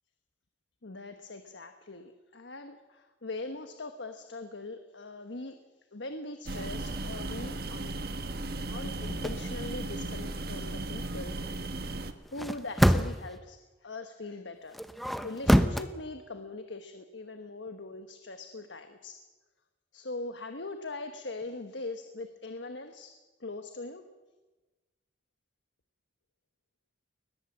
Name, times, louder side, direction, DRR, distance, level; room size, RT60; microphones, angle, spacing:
voice 1, 0.8-5.6 5.9-7.9 8.7-11.7 12.3-14.8 15.2-19.2 19.9-23.1 23.4-24.0, left 2 dB, 80° left, 7 dB, 1.3 m, -41 dB
sound 1, 6.5-12.1, right 2 dB, 55° right, 1.5 m, -36 dB
sound 2, 9.0-9.4 12.3-13.3 14.7-15.9, equal, ahead, 0.8 m, -25 dB
21.5 x 20.0 x 7.4 m, 1.2 s
head